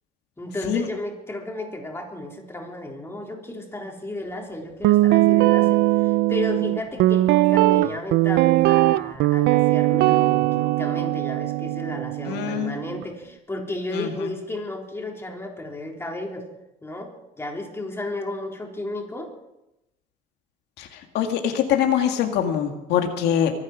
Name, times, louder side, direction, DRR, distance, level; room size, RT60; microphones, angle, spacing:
voice 1, 0.4-16.5 16.8-17.1 17.4-19.3, left 1 dB, 15° left, 1 dB, 3.6 m, -33 dB
Guitar, 4.8-13.0, right 17 dB, 85° right, 0.5 m, -20 dB
voice 2, 12.3-12.7 13.9-14.3 20.8-20.9 21.1-23.5, left 9 dB, 85° left, 5 dB, 1.9 m, -23 dB
24.5 x 9.0 x 6.2 m, 0.91 s
cardioid pair, 110°, 17 cm